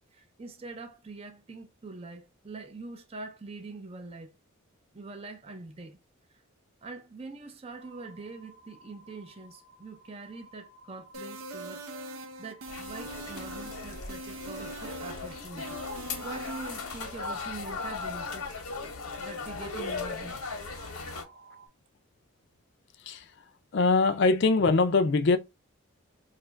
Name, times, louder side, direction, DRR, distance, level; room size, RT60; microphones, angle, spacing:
voice 1, 0.1-4.3 4.9-6.0 6.8-18.5 19.2-20.4 21.0-21.1, right 3 dB, 25° right, 0.5 m, -44 dB
sound 1, 7.8-21.7, equal, 40° right, 0.8 m, -56 dB
sound 2, 11.1-17.0, right 1 dB, 80° right, 0.7 m, -41 dB
sound 3, 12.7-21.2, left 4 dB, 90° left, 0.9 m, -38 dB
voice 2, 23.7-25.4, left 3 dB, 55° left, 0.4 m, -22 dB
3.0 x 2.4 x 4.3 m
head